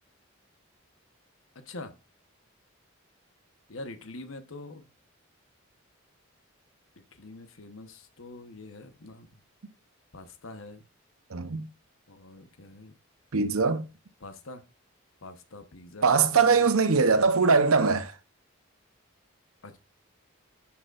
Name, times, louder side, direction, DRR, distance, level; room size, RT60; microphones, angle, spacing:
voice 1, 1.5-1.9 3.7-4.9 7.1-9.3 10.1-10.8 12.1-12.9 14.2-14.6 15.2-16.7 19.6-19.8, left 2 dB, 75° left, 1.1 m, -44 dB
voice 2, 11.3-11.7 13.3-13.8 16.0-18.1, right 5 dB, 85° right, 0.8 m, -22 dB
9.9 x 6.0 x 2.5 m
head